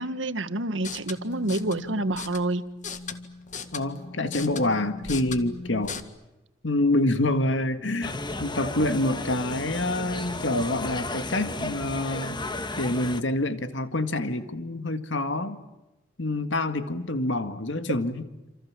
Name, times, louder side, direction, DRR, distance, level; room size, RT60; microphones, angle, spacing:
voice 1, 0.0-2.6, right 2 dB, 80° right, 10 dB, 1.7 m, -28 dB
sound 1, 0.7-6.0, left 4 dB, 40° left, 1.9 m, -38 dB
voice 2, 3.7-6.0 6.6-8.1 8.4-12.4 12.8-15.6 16.2-18.2, left 1 dB, 75° left, 9 dB, 1.9 m, -27 dB
sound 2, 8.0-13.2, left 2 dB, 25° left, 1.5 m, -34 dB
28.5 x 27.5 x 7.5 m, 1.0 s
head